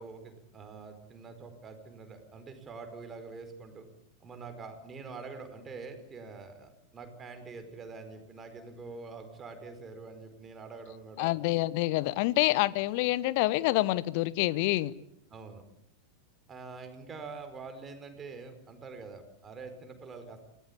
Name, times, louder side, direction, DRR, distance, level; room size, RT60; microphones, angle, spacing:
voice 1, 0.0-3.9 4.2-11.3 15.3-15.6 16.5-20.4, right 4 dB, 20° right, 4.8 m, -45 dB
voice 2, 11.2-14.9, left 18 dB, 45° left, 0.9 m, -27 dB
28.5 x 18.5 x 8.6 m
figure-of-eight pair, 90°, 0 cm